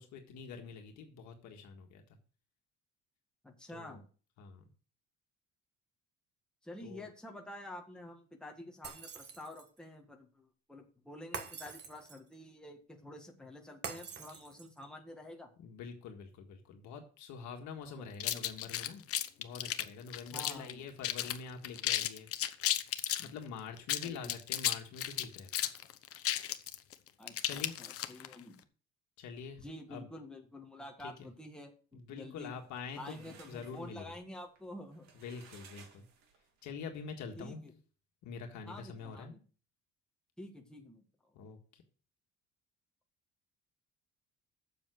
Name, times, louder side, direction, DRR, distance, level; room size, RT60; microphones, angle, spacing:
voice 1, 0.0-2.2 3.7-4.0 4.4-4.6 6.8-7.1 15.6-19.0 19.4-22.7 23.2-25.7 27.4-27.8 29.2-30.1 31.0-31.3 31.9-34.1 35.1-36.0 36.6-37.6 38.2-39.3 41.3-41.8, left 5 dB, 70° left, 4 dB, 1.7 m, -46 dB
voice 2, 3.4-4.0 6.6-15.5 17.9-18.0 20.3-20.9 24.0-24.4 27.2-28.6 29.6-32.5 32.9-35.1 37.4-37.7 38.7-39.4 40.4-41.3, left 1 dB, 5° left, 1 dB, 1.7 m, -49 dB
Shatter, 8.8-9.8 11.3-12.3 13.8-14.8, right 6 dB, 35° right, 1.4 m, -45 dB
sound 1, 18.2-20.7 21.0-21.4 21.6-23.3 23.8-28.3, left 12 dB, 50° left, 0.8 m, -34 dB
sound 2, 32.4-36.6, right 6 dB, 65° right, 2.5 m, -59 dB
7.4 x 7.2 x 6.5 m, 0.39 s
cardioid pair, 155°, 30 cm